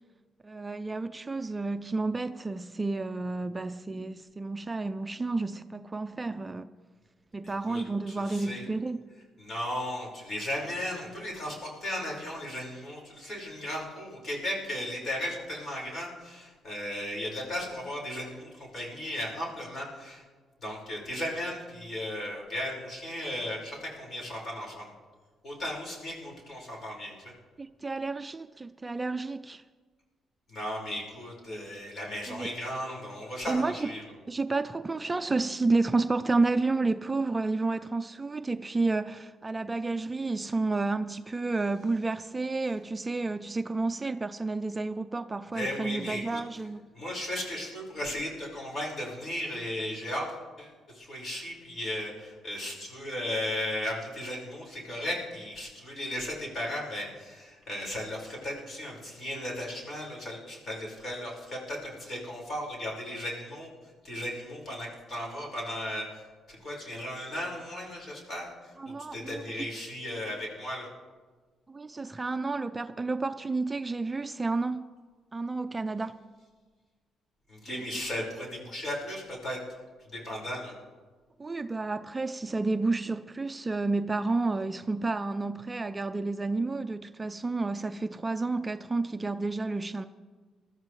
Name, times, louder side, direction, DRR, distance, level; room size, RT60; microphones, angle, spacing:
voice 1, 0.4-6.7 7.3-9.0 27.6-29.6 32.3-32.5 33.5-33.9 34.2-46.9 68.8-69.7 71.7-74.9 75.3-76.2 77.7-77.9 81.4-90.1, right 3 dB, 20° right, 0.4 m, -31 dB
voice 2, 7.4-7.8 8.3-8.6 9.4-20.2 20.6-24.9 25.4-27.3 30.5-34.0 45.5-46.4 46.9-63.7 64.0-66.2 66.5-68.5 69.1-70.9 77.5-79.6 80.1-80.7, left 1 dB, 45° left, 5.0 m, -36 dB
21.0 x 13.0 x 3.2 m
cardioid pair, 90°, 0 cm